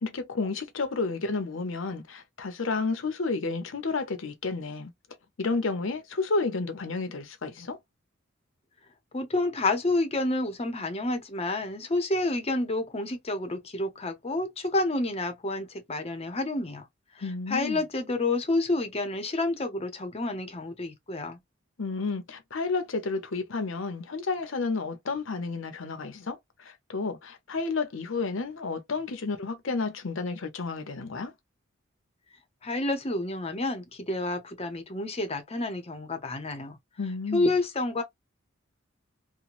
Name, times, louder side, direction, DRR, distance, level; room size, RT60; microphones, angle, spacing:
voice 1, 0.0-4.9 5.4-7.8 17.2-17.8 21.8-31.3 37.0-37.5, left 3 dB, 70° left, 0.8 m, -31 dB
voice 2, 9.1-16.9 17.2-21.4 32.6-36.8 37.3-38.0, left 2 dB, 30° left, 0.7 m, -29 dB
3.0 x 2.1 x 2.5 m
head